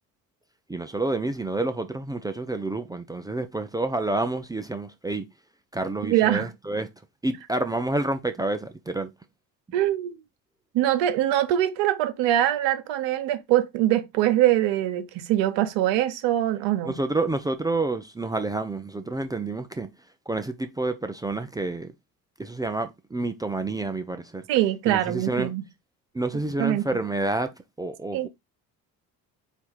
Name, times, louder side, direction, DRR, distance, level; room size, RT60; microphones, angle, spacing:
voice 1, 0.7-5.3 5.7-6.9 7.2-9.1 16.9-19.9 20.3-21.9 22.4-24.4 24.9-25.5 26.1-27.5 27.8-28.3, right 2 dB, 10° right, 0.3 m, -28 dB
voice 2, 6.0-6.5 9.7-10.2 10.7-17.0 24.5-25.7 26.3-27.0 28.1-28.3, right 13 dB, 60° right, 0.8 m, -23 dB
4.4 x 2.4 x 4.3 m
hypercardioid pair, 55°, 50 cm